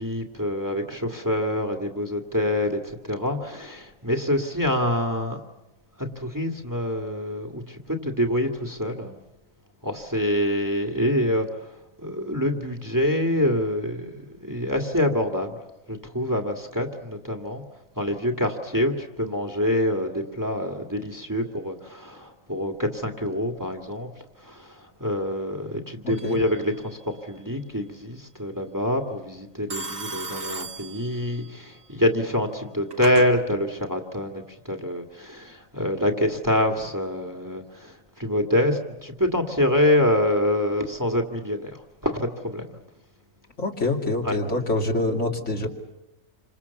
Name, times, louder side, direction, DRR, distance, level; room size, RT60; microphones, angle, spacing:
voice 1, 0.0-5.4 6.0-9.2 9.8-11.7 12.0-15.6 15.9-17.6 18.0-24.1 24.4-42.6 44.2-44.4 45.6-45.7, left 1 dB, 15° right, 3 dB, 2.1 m, -26 dB
voice 2, 26.0-26.4 43.6-45.7, left 2 dB, 60° left, 1 dB, 3.0 m, -25 dB
Telephone, 26.1-26.6 29.7-31.6 32.5-33.3, right 3 dB, 70° right, 2.5 m, -36 dB
28.5 x 26.0 x 7.1 m, 0.98 s
omnidirectional pair, 1.4 m